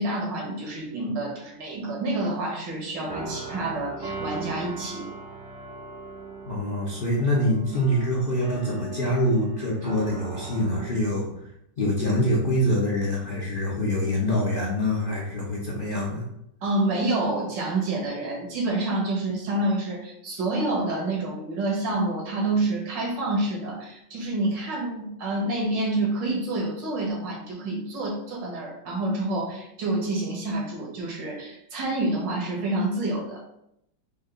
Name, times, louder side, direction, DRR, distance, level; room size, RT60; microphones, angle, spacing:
voice 1, 0.0-5.1 16.6-33.4, right 2 dB, 75° right, -2 dB, 2.0 m, -28 dB
sound 1, 3.0-11.5, right 3 dB, 35° right, 0.9 m, -38 dB
voice 2, 6.5-11.3 11.8-16.3, left 1 dB, 45° left, -5 dB, 0.7 m, -25 dB
5.4 x 2.5 x 3.9 m, 0.78 s
omnidirectional pair, 2.0 m